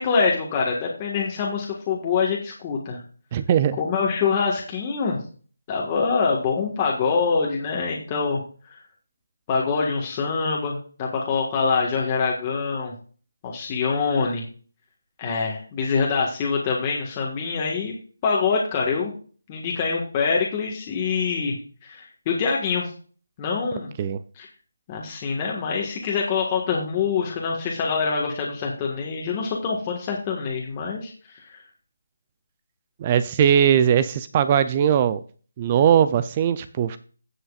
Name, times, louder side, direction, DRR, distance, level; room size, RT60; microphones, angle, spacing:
voice 1, 0.0-3.0 3.8-5.2 5.7-8.4 8.7-8.8 9.5-12.9 13.4-14.4 15.2-17.9 18.2-19.1 19.5-21.6 21.8-22.9 23.4-23.9 24.4-24.5 24.9-31.1, left 5 dB, 15° left, -2 dB, 1.6 m, -25 dB
voice 2, 3.3-3.8 24.0-24.2 33.0-35.2 35.6-37.0, right 9 dB, 20° right, 14 dB, 0.5 m, -19 dB
17.0 x 6.2 x 2.4 m, 0.40 s
figure-of-eight pair, 175°, 0 cm